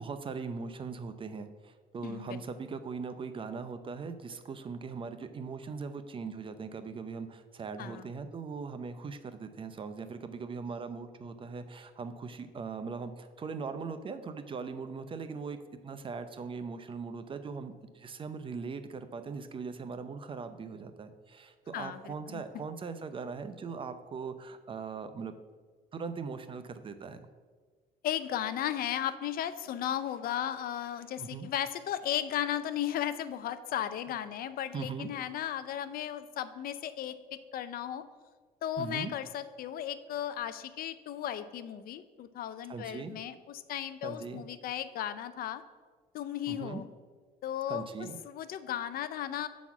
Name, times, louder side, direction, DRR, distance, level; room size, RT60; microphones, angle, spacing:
voice 1, 0.0-15.6 15.8-25.3 25.9-27.2 31.2-31.5 34.7-35.1 38.8-39.1 42.7-43.2 44.0-44.4 46.5-46.8 47.7-48.2, right 5 dB, 30° right, 9 dB, 0.5 m, -40 dB
voice 2, 2.0-2.4 7.8-8.1 21.7-22.4 28.0-38.0 38.6-45.6 46.1-46.9 47.4-49.5, left 10 dB, 60° left, 13 dB, 0.5 m, -35 dB
7.1 x 4.1 x 5.8 m, 1.5 s
cardioid pair, 110°, 17 cm